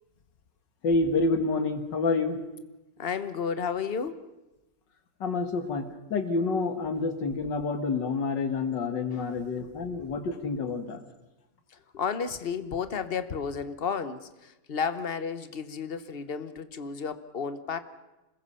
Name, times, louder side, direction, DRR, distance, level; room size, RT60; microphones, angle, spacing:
voice 1, 0.8-2.4 5.2-11.0, left 3 dB, 80° left, 7 dB, 2.4 m, -28 dB
voice 2, 3.0-4.3 9.1-9.5 11.7-17.8, left 6 dB, 40° left, 11 dB, 1.1 m, -32 dB
26.0 x 21.0 x 5.7 m, 1.0 s
omnidirectional pair, 1.9 m